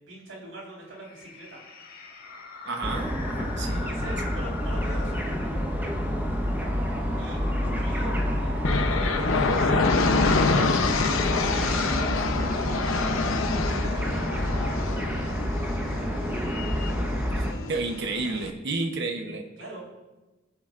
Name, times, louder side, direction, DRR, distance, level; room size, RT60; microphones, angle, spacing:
voice 1, 0.1-1.6 3.6-5.4 7.2-12.9 13.7-15.4 19.6-19.8, right 1 dB, 85° right, -4 dB, 4.4 m, -43 dB
sound 1, 1.0-14.8, left 3 dB, 50° left, 1.6 m, -42 dB
voice 2, 2.6-3.9 17.3-19.5, right 3 dB, 60° right, 3 dB, 0.9 m, -31 dB
sound 2, 2.8-17.5, equal, 10° right, 1.0 m, -28 dB
sound 3, 8.6-18.5, left 3 dB, 90° left, 0.8 m, -27 dB
22.0 x 7.6 x 2.5 m, 1.1 s
head